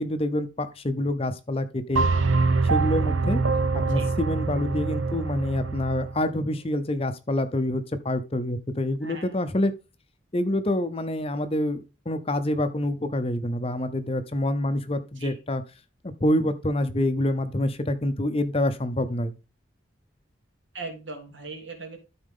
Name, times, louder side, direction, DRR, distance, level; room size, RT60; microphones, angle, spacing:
voice 1, 0.0-2.1 2.6-3.4 3.7-9.7 10.3-15.6 16.0-19.3, left 1 dB, 30° left, 0.7 m, -27 dB
sound 1, 2.0-6.2, right 3 dB, 90° right, 0.8 m, -24 dB
voice 2, 9.0-9.3 14.9-15.4 20.7-22.0, right 3 dB, 75° right, 3.0 m, -39 dB
12.5 x 4.3 x 3.7 m
head